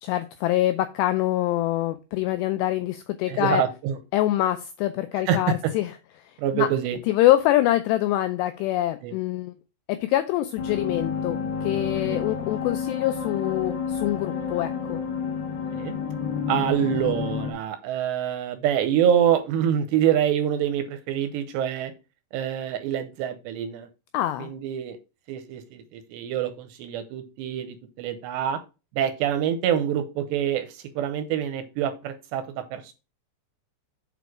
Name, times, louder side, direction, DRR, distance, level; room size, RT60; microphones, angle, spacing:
voice 1, 0.0-3.6 4.1-5.9 6.5-6.7 7.1-9.5 9.9-15.0 24.1-24.5, left 14 dB, 85° left, 10 dB, 2.4 m, -25 dB
voice 2, 3.3-4.0 5.3-5.5 6.4-7.0 9.0-9.2 11.9-12.2 15.7-16.0 16.5-21.9 22.3-23.9 24.4-25.0 25.3-28.6 29.0-32.9, right 9 dB, 80° right, 10 dB, 2.7 m, -26 dB
sound 1, 10.6-17.5, left 6 dB, 70° left, 2.0 m, -30 dB
8.3 x 4.6 x 4.8 m, 0.30 s
omnidirectional pair, 5.4 m